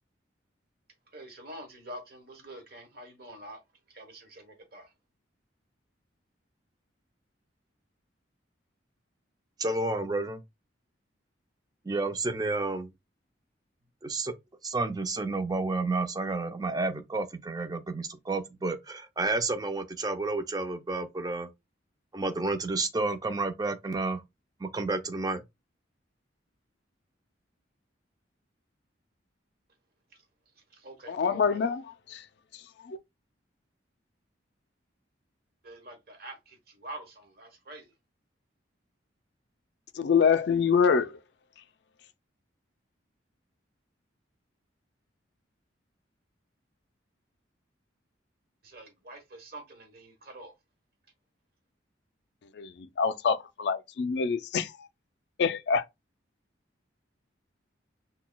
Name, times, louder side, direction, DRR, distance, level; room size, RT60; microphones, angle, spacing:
voice 1, 1.1-3.6 3.9-4.9 30.7-31.6 35.6-37.9 48.6-50.5, right 1 dB, 55° right, 1.1 m, -46 dB
voice 2, 9.6-10.4 11.8-12.9 14.0-14.3 14.6-21.5 22.1-24.2 24.6-25.4, right 3 dB, 20° right, 0.4 m, -30 dB
voice 3, 31.1-32.3 32.5-33.0 39.9-41.2 41.6-41.7 52.4-54.9 55.4-55.9, left 6 dB, 60° left, 0.4 m, -26 dB
5.9 x 2.2 x 2.2 m
head